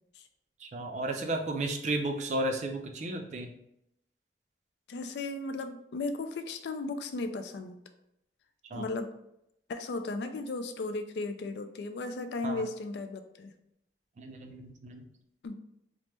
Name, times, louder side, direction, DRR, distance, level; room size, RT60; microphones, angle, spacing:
voice 1, 0.6-3.5 8.7-8.8 12.4-12.6 14.2-15.0, right 2 dB, 40° right, 4 dB, 0.3 m, -33 dB
voice 2, 4.9-7.8 8.7-9.1 9.7-13.5 15.4-15.5, left 3 dB, 75° left, 8 dB, 0.3 m, -35 dB
3.3 x 2.0 x 3.0 m, 0.79 s
head